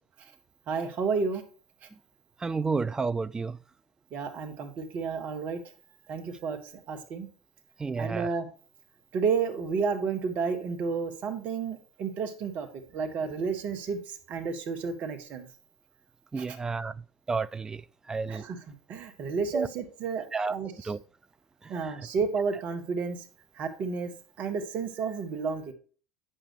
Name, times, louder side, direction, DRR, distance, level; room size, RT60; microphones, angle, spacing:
voice 1, 0.7-1.4 4.1-5.6 6.1-6.6 6.9-7.3 8.0-8.5 9.1-12.7 12.9-15.5 16.4-16.7 18.3-20.9 21.7-23.2 23.5-24.1 24.4-25.7, right 5 dB, 45° right, 1.7 m, -31 dB
voice 2, 2.4-3.6 7.8-8.3 16.3-16.9 17.3-17.8 18.1-18.4 19.5-19.7 20.3-20.5 20.9-21.0, right 4 dB, 15° right, 0.4 m, -30 dB
8.4 x 6.8 x 3.1 m
figure-of-eight pair, 70°, 4 cm